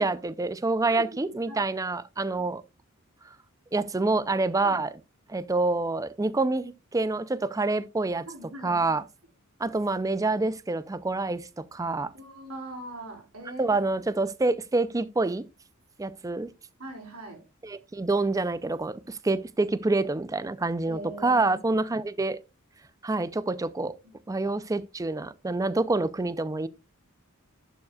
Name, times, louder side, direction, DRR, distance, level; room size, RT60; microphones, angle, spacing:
voice 1, 0.0-2.6 3.7-4.9 5.3-8.3 8.6-9.0 9.6-12.1 13.6-15.4 16.0-16.5 17.6-22.4 23.0-23.9 24.3-26.7, right 3 dB, 15° right, 0.4 m, -27 dB
voice 2, 0.9-1.7 4.6-4.8 8.3-9.0 12.1-13.8 16.8-17.4 20.9-21.6 24.0-24.1, right 1 dB, 80° right, 4.1 m, -41 dB
11.5 x 7.1 x 2.3 m
head